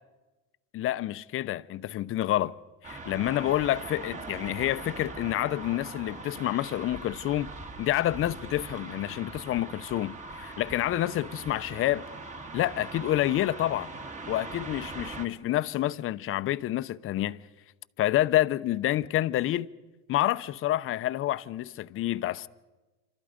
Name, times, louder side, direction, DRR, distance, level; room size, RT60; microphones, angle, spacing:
voice 1, 0.7-2.6 2.8-7.5 7.8-12.1 12.5-13.9 14.3-17.4 18.0-19.7 20.1-22.5, left 14 dB, 45° left, 0.7 m, -28 dB
sound 1, 2.8-15.3, right 3 dB, 25° right, 1.7 m, -41 dB
27.0 x 26.0 x 5.1 m
cardioid pair, 125°, 30 cm